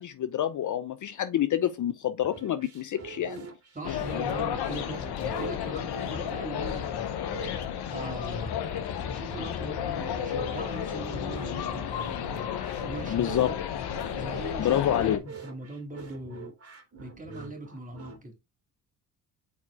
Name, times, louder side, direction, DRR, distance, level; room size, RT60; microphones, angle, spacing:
voice 1, 0.0-3.5 13.1-13.5 14.6-15.2, left 11 dB, 50° left, 0.6 m, -27 dB
sound 1, 2.2-18.2, right 4 dB, 35° right, 2.3 m, -45 dB
voice 2, 3.7-7.0 7.9-8.6 9.0-12.4 12.8-13.6 14.1-16.5 17.0-18.4, right 2 dB, 20° right, 2.7 m, -41 dB
sound 2, 3.8-15.2, left 9 dB, 70° left, 1.1 m, -32 dB
6.1 x 4.3 x 3.6 m
hypercardioid pair, 50°, 40 cm